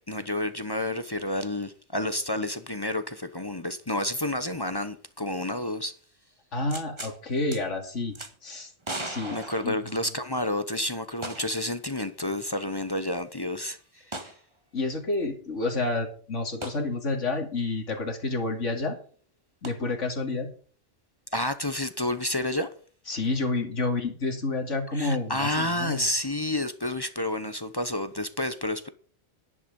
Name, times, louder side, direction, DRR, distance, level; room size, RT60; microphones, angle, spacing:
voice 1, 0.1-5.9 9.3-14.0 21.3-22.7 24.9-28.9, left 1 dB, 20° left, 0.8 m, -30 dB
voice 2, 6.5-8.2 8.4-8.7 9.0-9.8 14.7-19.0 19.6-20.5 23.1-26.1, left 3 dB, 75° left, 3.0 m, -29 dB
sound 1, 6.7-7.2 7.5-7.6 8.2-8.3 8.8-10.4 11.2-11.7 12.0-12.1 14.1-14.4 16.6-16.8 19.6-19.7, right 2 dB, 25° right, 1.6 m, -37 dB
11.0 x 11.0 x 5.4 m
omnidirectional pair, 1.2 m